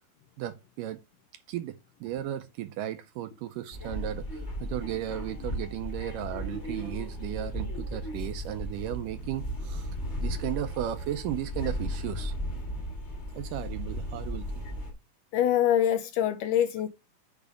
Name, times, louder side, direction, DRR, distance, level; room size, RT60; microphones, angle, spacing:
voice 1, 0.4-1.0 1.5-9.9 10.2-12.3 13.4-14.7, right 12 dB, 80° right, 2.0 m, -35 dB
sound 1, 3.7-14.9, equal, 30° left, 1.2 m, -35 dB
voice 2, 15.3-16.9, left 10 dB, 80° left, 2.0 m, -24 dB
8.3 x 3.5 x 5.1 m
omnidirectional pair, 4.2 m